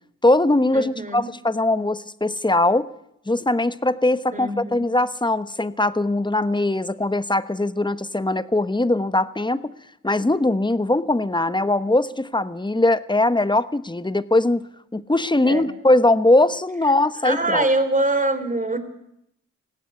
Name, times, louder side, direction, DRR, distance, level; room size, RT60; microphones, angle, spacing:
voice 1, 0.2-2.9 3.3-9.7 10.0-14.6 14.9-17.7, left 2 dB, 15° left, 14 dB, 1.0 m, -21 dB
voice 2, 0.7-1.3 4.3-4.8 15.4-15.7 17.2-18.8, right 2 dB, 25° right, 9 dB, 3.6 m, -23 dB
18.5 x 16.5 x 8.4 m, 0.76 s
cardioid pair, 60°, 32 cm